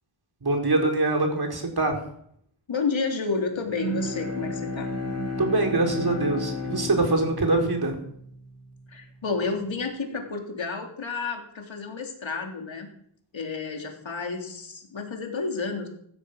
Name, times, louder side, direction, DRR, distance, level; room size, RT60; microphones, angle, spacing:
voice 1, 0.4-2.0 5.4-8.0, right 2 dB, 50° right, 3 dB, 4.6 m, -24 dB
voice 2, 2.7-4.9 8.9-12.9 13.3-15.9, left 4 dB, 75° left, 3 dB, 3.6 m, -30 dB
Bowed string instrument, 3.6-8.9, left 1 dB, 35° right, 6.3 m, -33 dB
15.5 x 12.5 x 6.5 m, 0.68 s
cardioid pair, 60°, 47 cm